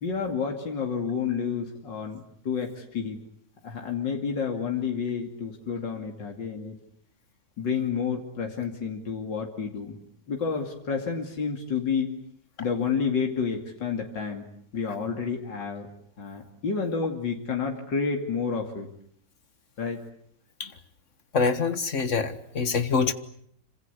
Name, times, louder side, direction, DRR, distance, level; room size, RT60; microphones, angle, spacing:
voice 1, 0.0-3.2 3.6-6.8 7.6-10.0 10.3-12.1 12.6-14.5 14.7-15.9 16.2-18.9 19.8-20.0, left 6 dB, 90° left, 3.3 m, -30 dB
voice 2, 21.3-23.1, left 5 dB, 45° left, 1.9 m, -25 dB
27.0 x 26.0 x 8.2 m
omnidirectional pair, 1.9 m